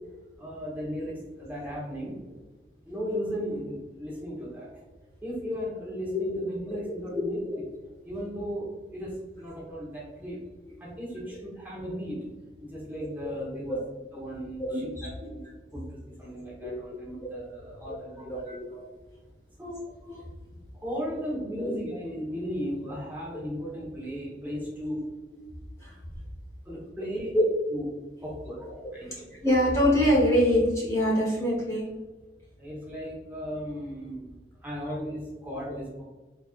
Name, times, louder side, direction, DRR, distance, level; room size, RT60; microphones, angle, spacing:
voice 1, 0.4-2.2 2.8-4.7 5.2-7.4 8.0-10.4 10.8-12.2 12.6-13.7 14.1-14.8 15.2-15.4 15.7-15.8 16.2-18.5 19.6-19.8 20.7-25.0 26.6-27.3 27.7-27.8 28.2-28.7 28.9-29.3 32.6-34.2 34.6-36.0, equal, 10° right, -7 dB, 1.1 m, -36 dB
voice 2, 13.0-13.3 13.7-13.8 14.6-15.3 15.7-15.8 16.6-16.8 17.9-18.0 18.2-18.8 20.1-20.3 21.6-21.7 25.8-26.0 27.3-27.4 28.6-31.9 34.8-34.9 35.7-35.8, equal, 15° left, -6 dB, 1.1 m, -26 dB
4.1 x 3.2 x 2.4 m, 1.2 s
head